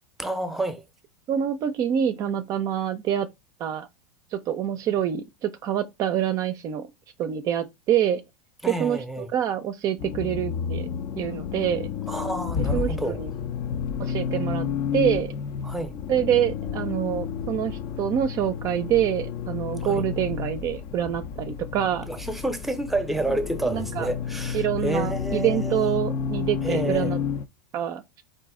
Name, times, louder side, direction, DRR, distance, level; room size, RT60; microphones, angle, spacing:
voice 1, 0.2-0.8 8.6-9.3 12.1-13.2 15.6-16.0 19.8-20.0 22.1-25.9 26.6-27.1, right 1 dB, ahead, 0.7 m, -29 dB
voice 2, 1.3-3.3 3.6-3.9 4.3-6.9 7.2-8.2 8.7-10.9 11.2-11.9 12.7-13.3 14.0-14.7 14.9-15.3 16.1-22.1 23.6-24.1 24.5-27.2 27.7-28.0, right 10 dB, 40° right, 0.5 m, -26 dB
Accelerating revving vroom, 10.0-27.5, left 7 dB, 50° left, 0.4 m, -31 dB
4.0 x 2.5 x 3.6 m
hypercardioid pair, 110°, 9 cm